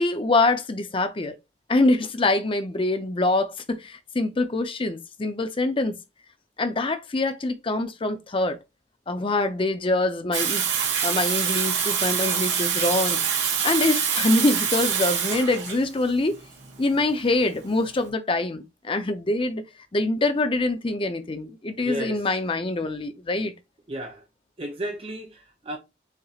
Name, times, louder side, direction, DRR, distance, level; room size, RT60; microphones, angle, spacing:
voice 1, 0.0-1.3 1.7-6.0 6.6-8.6 9.1-10.6 11.0-13.2 13.6-16.4 16.8-19.6 19.9-23.5, left 2 dB, 30° left, 0.6 m, -24 dB
Water tap faucet / Sink (filling or washing), 10.3-18.0, right 7 dB, 85° right, 1.7 m, -25 dB
voice 2, 21.8-22.2 23.9-24.2 24.6-25.8, right 1 dB, 30° right, 0.6 m, -33 dB
6.5 x 3.0 x 2.4 m
head